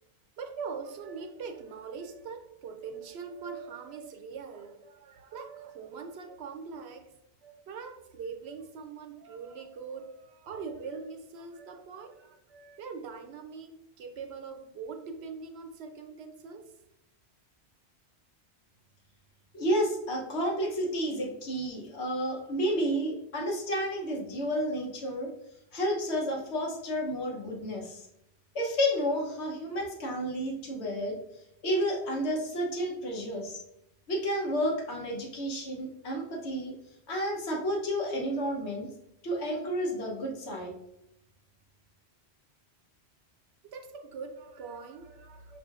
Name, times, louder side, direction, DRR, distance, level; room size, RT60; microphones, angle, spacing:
voice 1, 0.4-7.1 7.4-16.7 43.6-45.6, right 5 dB, 75° right, 5 dB, 0.8 m, -42 dB
voice 2, 19.5-25.3 25.7-28.1 28.5-31.2 31.6-33.6 34.1-36.7 37.1-38.9 39.2-40.7, equal, 85° left, -1 dB, 1.2 m, -31 dB
5.5 x 2.5 x 2.4 m, 0.85 s
omnidirectional pair, 1.1 m